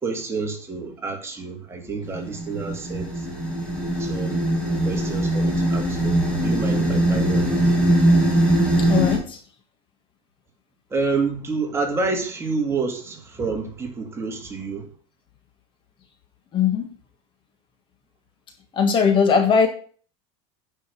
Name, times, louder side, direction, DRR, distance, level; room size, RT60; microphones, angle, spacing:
voice 1, 0.0-3.3 4.0-4.5 4.8-7.5 10.9-14.9, right 4 dB, 15° right, 2.4 m, -28 dB
sound 1, 2.1-9.2, right 1 dB, 10° left, 4.3 m, -21 dB
voice 2, 8.8-9.4 16.5-16.9 18.7-19.7, left 6 dB, 35° left, 1.5 m, -19 dB
9.7 x 5.5 x 6.8 m
supercardioid pair, 140°, 15 cm